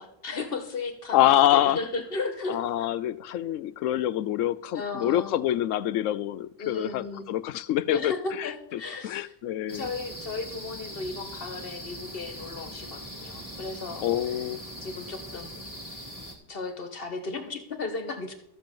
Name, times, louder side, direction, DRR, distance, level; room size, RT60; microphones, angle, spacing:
voice 1, 0.0-2.9 4.7-5.6 6.6-7.3 7.9-9.3 9.7-14.3 14.8-15.6 16.5-18.3, left 3 dB, 50° left, 7 dB, 1.6 m, -35 dB
voice 2, 1.1-1.8 2.5-8.1 8.4-8.5 9.0-9.9 14.0-14.6, left 12 dB, 90° left, 17 dB, 1.0 m, -25 dB
sound 1, 9.7-16.4, equal, 15° left, 1.9 m, -41 dB
13.0 x 5.2 x 7.1 m, 0.80 s
omnidirectional pair, 1.3 m